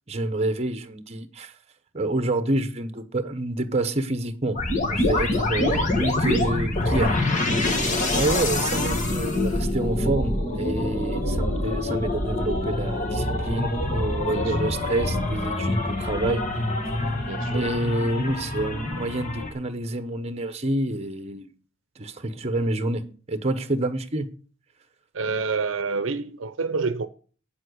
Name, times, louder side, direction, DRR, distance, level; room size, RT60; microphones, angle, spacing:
voice 1, 0.1-1.5 1.9-4.6 4.9-7.1 8.2-16.4 17.5-21.5 22.0-24.3, right 2 dB, 30° right, 0.9 m, -28 dB
sound 1, 4.6-19.5, left 1 dB, 40° left, 1.9 m, -25 dB
voice 2, 17.3-17.7 25.1-27.1, right 4 dB, 70° right, 0.6 m, -28 dB
8.8 x 7.4 x 6.3 m
head